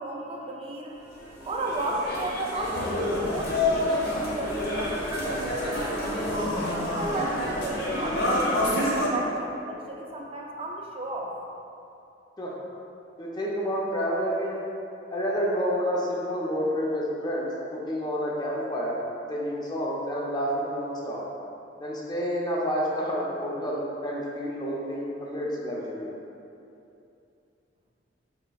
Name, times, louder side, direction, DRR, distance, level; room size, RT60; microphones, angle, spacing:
voice 1, 0.0-5.9 6.8-11.4, right 1 dB, 30° right, 0 dB, 0.4 m, -34 dB
sound 1, 1.1-9.1, left 1 dB, 60° left, 0.8 m, -28 dB
voice 2, 13.2-14.6 15.1-19.0 19.3-21.2 21.8-26.1, equal, 20° left, -4 dB, 0.5 m, -29 dB
4.9 x 3.2 x 2.2 m, 2.7 s
head